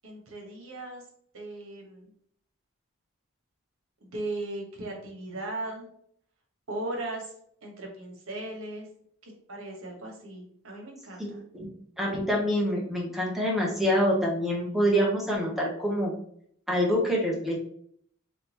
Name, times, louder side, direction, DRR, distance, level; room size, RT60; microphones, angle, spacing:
voice 1, 0.0-1.0 1.3-2.1 4.0-5.9 6.7-7.3 7.6-8.9 9.2-11.4, right 2 dB, 65° right, 1 dB, 1.2 m, -37 dB
voice 2, 11.2-11.7 12.0-16.1 16.7-17.6, equal, ahead, -3 dB, 1.0 m, -26 dB
3.7 x 3.3 x 2.9 m, 0.64 s
head